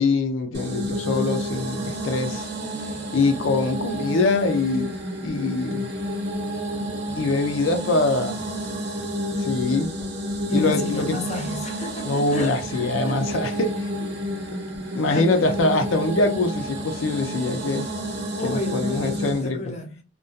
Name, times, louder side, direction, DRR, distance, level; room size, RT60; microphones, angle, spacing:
voice 1, 0.0-2.5 3.1-4.9 5.2-5.9 7.2-8.4 9.4-9.9 10.5-11.2 12.0-13.9 14.9-17.9 18.4-19.7, left 3 dB, 85° left, 0.5 m, -23 dB
sound 1, 0.5-19.5, equal, 60° right, 0.7 m, -30 dB
voice 2, 10.5-13.4 15.0-15.3 18.4-20.0, left 1 dB, 35° left, 0.6 m, -32 dB
2.5 x 2.1 x 2.3 m
head